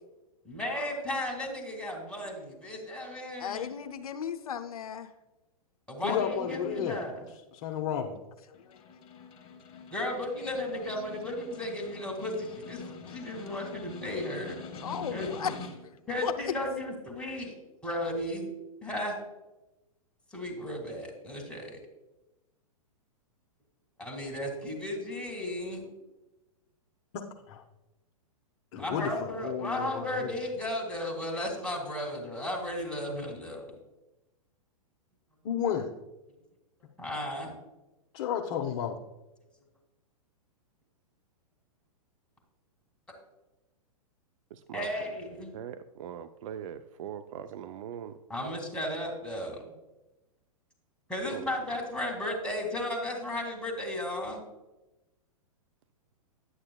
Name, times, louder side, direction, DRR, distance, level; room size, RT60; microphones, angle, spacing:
voice 1, 0.5-3.7 5.9-7.3 9.9-14.6 15.1-15.3 16.1-17.5 17.8-18.5 18.8-19.2 20.3-21.8 24.0-25.9 28.7-33.7 37.0-37.5 44.7-45.6 48.3-49.6 51.1-54.4, left 1 dB, 5° left, 0 dB, 2.1 m, -35 dB
voice 2, 3.4-5.1 8.7-8.8 12.8-13.4 14.8-15.5 15.8-15.9 16.2-16.3, left 8 dB, 75° left, 7 dB, 0.6 m, -36 dB
voice 3, 6.0-7.0 7.5-8.2 27.1-27.6 28.7-30.4 35.4-35.9 38.1-39.0, left 8 dB, 50° left, 2 dB, 0.8 m, -32 dB
Snare drum, 8.5-16.0, left 4 dB, 30° left, 1.3 m, -45 dB
voice 4, 44.5-44.9 45.5-48.2 51.3-51.4, right 9 dB, 60° right, 10 dB, 0.5 m, -41 dB
11.0 x 8.8 x 2.3 m, 1.0 s
hypercardioid pair, 115°, 19 cm